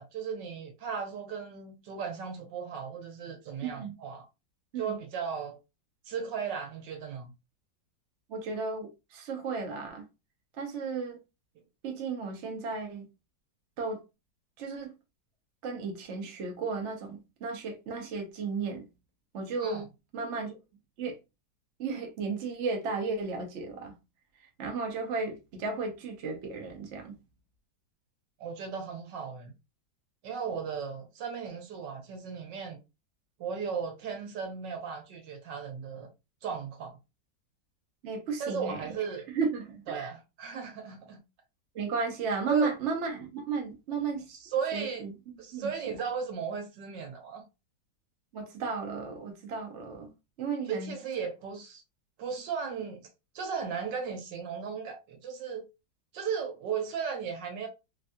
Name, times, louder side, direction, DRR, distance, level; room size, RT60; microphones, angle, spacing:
voice 1, 0.0-4.3 4.8-5.5 6.1-7.3 19.6-19.8 28.4-29.5 30.2-32.8 33.4-36.1 36.4-37.0 38.4-39.3 39.9-41.2 42.5-42.7 44.3-45.1 45.4-47.4 50.7-51.8 52.2-53.0 53.3-55.6 56.1-57.7, right 6 dB, 80° right, 1.5 m, -36 dB
voice 2, 3.6-4.0 4.7-5.0 8.3-10.0 10.5-11.2 11.8-13.1 13.8-14.0 14.6-14.9 15.6-18.9 19.3-19.9 20.1-20.6 21.0-21.2 21.8-23.9 24.4-27.2 38.0-39.0 39.3-40.1 41.7-44.4 44.7-45.1 45.5-45.7 48.3-50.1 50.4-51.0, right 4 dB, 50° right, 0.9 m, -34 dB
3.5 x 2.6 x 2.2 m
omnidirectional pair, 1.9 m